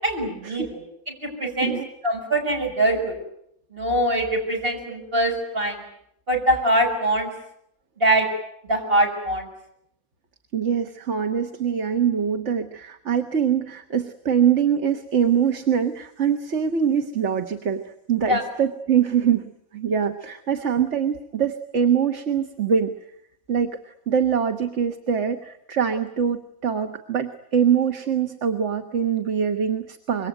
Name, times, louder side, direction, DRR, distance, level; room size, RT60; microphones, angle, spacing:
voice 1, 0.0-1.7 2.0-3.1 3.7-5.8 6.3-7.3 8.0-8.3 8.7-9.5 18.2-18.4, right 1 dB, 40° right, 1 dB, 6.9 m, -23 dB
voice 2, 10.5-22.9 23.5-23.8 24.1-30.3, right 7 dB, 55° right, 6 dB, 1.6 m, -23 dB
26.0 x 23.0 x 9.2 m, 0.76 s
omnidirectional pair, 1.5 m